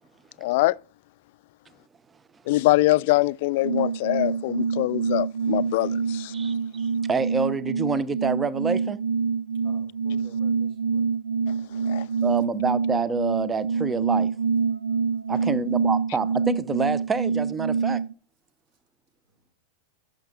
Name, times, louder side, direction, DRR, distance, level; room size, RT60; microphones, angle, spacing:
voice 1, 0.4-0.8 2.5-6.3 11.9-12.0, left 19 dB, 60° left, 0.3 m, -23 dB
sound 1, 3.6-18.1, right 5 dB, 85° right, 0.4 m, -26 dB
voice 2, 6.3-9.0 12.2-14.3 15.3-18.0, right 4 dB, 20° right, 0.6 m, -27 dB
voice 3, 9.6-11.1 15.5-15.6 19.4-19.5, right 1 dB, 55° right, 5.2 m, -51 dB
11.5 x 6.4 x 3.7 m
hypercardioid pair, 95°, 0 cm